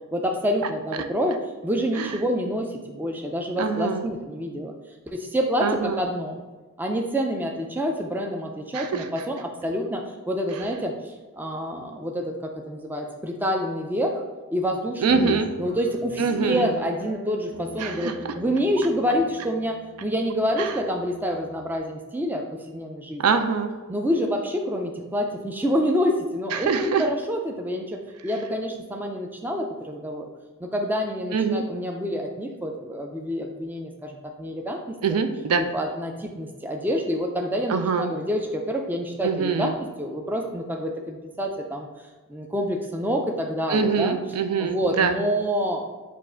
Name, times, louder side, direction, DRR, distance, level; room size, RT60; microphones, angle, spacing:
voice 1, 0.1-1.4 1.6-4.7 5.1-6.4 6.8-14.2 14.5-23.2 23.9-30.3 30.6-34.9 35.6-39.7 40.0-41.9 42.3-44.2 44.6-45.8, equal, 10° right, 2 dB, 0.3 m, -27 dB
voice 2, 3.6-4.1 5.6-6.0 8.7-9.1 10.5-10.6 15.0-15.5 16.2-16.7 17.8-18.1 20.6-20.7 23.2-23.7 26.5-27.0 31.3-31.6 35.0-35.6 37.7-38.1 39.2-39.7 43.7-45.2, right 5 dB, 80° right, 8 dB, 0.4 m, -24 dB
Guitar, 15.1-21.8, right 1 dB, 50° right, 0.8 m, -42 dB
4.4 x 2.5 x 4.3 m, 1.3 s
head